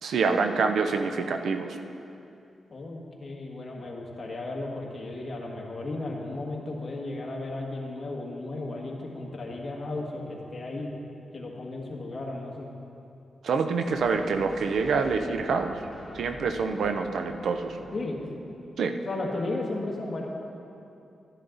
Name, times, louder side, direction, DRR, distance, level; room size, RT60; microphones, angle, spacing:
voice 1, 0.0-1.8 13.4-15.8 16.1-17.8 18.8-19.0, right 4 dB, 80° right, 7 dB, 0.6 m, -26 dB
voice 2, 2.7-10.9 11.3-12.7 17.9-18.3 19.0-20.3, left 2 dB, 35° left, -2 dB, 1.7 m, -34 dB
sound 1, 13.8-19.0, equal, 25° right, 2.3 m, -46 dB
12.0 x 11.0 x 3.9 m, 2.7 s
wide cardioid pair, 125°, 0 cm